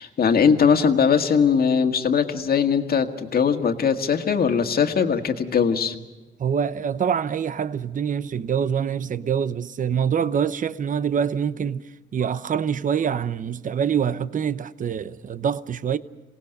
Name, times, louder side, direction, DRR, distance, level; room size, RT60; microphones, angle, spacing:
voice 1, 0.0-6.0, left 6 dB, 50° left, 1.8 m, -20 dB
voice 2, 6.4-11.9 12.1-16.0, right 7 dB, 40° right, 0.8 m, -25 dB
27.5 x 18.0 x 6.6 m
cardioid pair, 90°, 20 cm